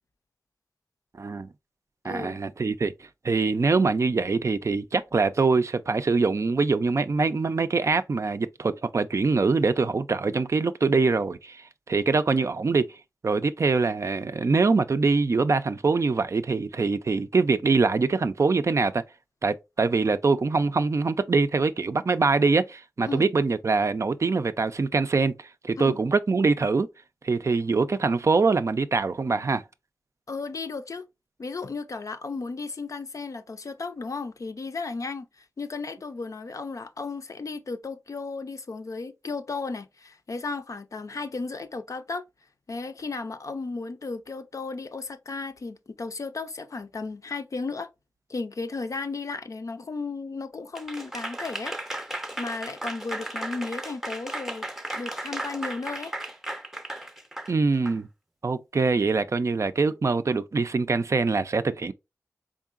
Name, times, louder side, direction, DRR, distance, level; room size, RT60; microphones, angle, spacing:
voice 1, 1.2-1.5 2.0-2.9 3.2-11.6 11.9-12.9 13.2-19.0 19.4-26.9 27.2-29.6 57.5-58.1 58.4-61.9, right 4 dB, 50° right, 0.4 m, -24 dB
voice 2, 2.0-2.4 23.1-23.3 25.8-26.0 30.3-31.1 31.4-42.2 42.7-47.9 48.3-51.7 52.4-54.7 54.9-56.1, left 4 dB, 60° left, 0.5 m, -34 dB
Applause / Crowd, 50.7-58.0, right 1 dB, 5° right, 0.6 m, -35 dB
3.7 x 3.6 x 2.4 m
cardioid pair, 50°, 6 cm